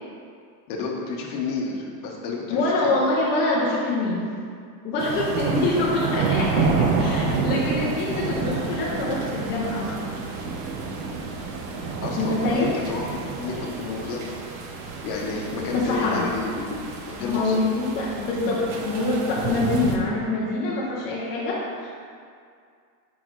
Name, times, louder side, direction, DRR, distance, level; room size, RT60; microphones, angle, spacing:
voice 1, 0.7-2.9 5.7-5.9 8.1-8.5 12.0-14.5 15.0-17.6, left 4 dB, 40° left, -1 dB, 1.0 m, -31 dB
voice 2, 2.5-4.3 4.8-10.0 12.1-12.8 15.7-16.2 17.2-21.9, left 2 dB, 25° left, -5 dB, 0.4 m, -25 dB
sound 1, 5.0-20.0, right 4 dB, 70° right, 1.0 m, -29 dB
7.0 x 5.0 x 3.1 m, 2.2 s
supercardioid pair, 165°, 47 cm